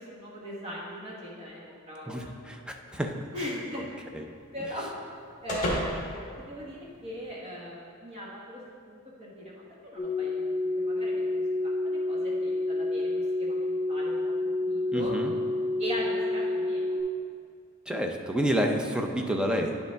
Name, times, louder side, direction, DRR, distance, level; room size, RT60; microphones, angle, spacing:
voice 1, 0.0-2.3 3.3-3.9 4.5-4.9 5.4-10.4 10.8-14.3 14.6-15.2 15.8-17.0, equal, 30° right, -5 dB, 1.1 m, -39 dB
voice 2, 2.1-3.5 4.1-4.3 14.9-15.3 17.9-19.8, equal, 5° right, 3 dB, 0.4 m, -29 dB
sound 1, 2.9-7.3, left 1 dB, 35° left, 1.4 m, -37 dB
sound 2, 10.0-17.0, left 2 dB, 15° left, 1.2 m, -29 dB
9.8 x 5.3 x 3.4 m, 2.2 s
head